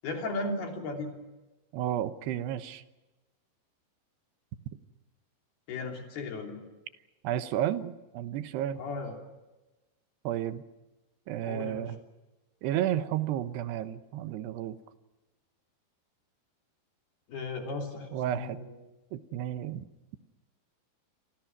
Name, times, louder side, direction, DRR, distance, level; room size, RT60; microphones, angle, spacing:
voice 1, 0.0-1.1 5.7-6.6 8.8-9.2 11.5-11.9 17.3-18.8, left 3 dB, 70° left, 3 dB, 5.1 m, -36 dB
voice 2, 1.7-2.8 7.2-8.8 10.2-10.6 11.3-12.0 12.6-14.8 18.1-18.6 19.1-19.9, right 11 dB, 80° right, 11 dB, 3.2 m, -32 dB
29.5 x 24.0 x 6.1 m, 1.1 s
omnidirectional pair, 4.8 m